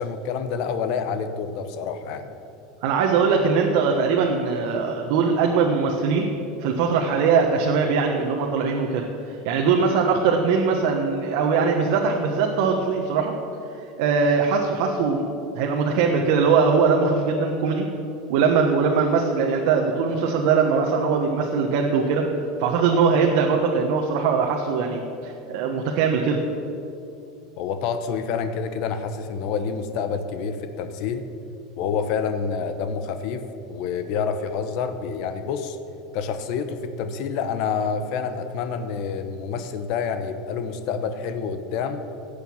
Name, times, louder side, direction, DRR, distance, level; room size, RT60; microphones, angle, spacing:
voice 1, 0.0-2.4 27.6-31.2 31.8-35.8 36.1-42.1, left 6 dB, 55° left, 9 dB, 0.9 m, -28 dB
voice 2, 2.8-6.3 6.6-13.4 14.0-17.9 18.3-22.3 22.6-26.4, right 5 dB, 65° right, 1 dB, 1.3 m, -21 dB
17.0 x 6.9 x 7.3 m, 2.7 s
supercardioid pair, 140°, 0 cm